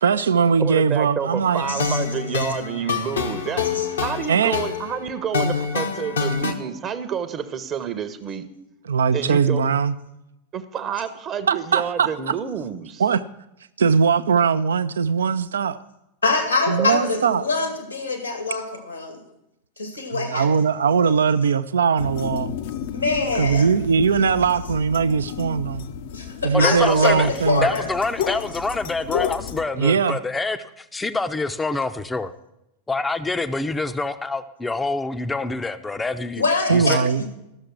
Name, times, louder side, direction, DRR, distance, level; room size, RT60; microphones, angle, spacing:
voice 1, 0.0-1.6 4.3-4.6 8.9-9.9 11.5-12.4 13.0-13.2 13.8-15.8 16.7-17.4 20.1-22.6 23.4-25.9 26.4-27.7 29.8-30.2 36.7-37.2, right 6 dB, 65° right, 0.4 m, -20 dB
voice 2, 0.6-3.7 4.0-8.5 9.1-9.7 10.5-13.0 16.8-16.9, right 7 dB, 30° right, 0.8 m, -29 dB
sound 1, 1.5-6.5, left 5 dB, 70° left, 1.0 m, -26 dB
voice 3, 1.7-2.0 3.7-3.9 16.2-19.2 19.8-20.5 22.9-23.7 26.1-27.9 36.4-37.3, left 3 dB, 85° left, 2.1 m, -24 dB
sound 2, 22.0-29.6, left 8 dB, 55° left, 0.6 m, -31 dB
voice 4, 26.5-27.3 27.6-32.3 32.9-36.4 36.7-37.0, left 3 dB, 10° left, 0.5 m, -26 dB
13.0 x 6.5 x 6.2 m
figure-of-eight pair, 90°, 0 cm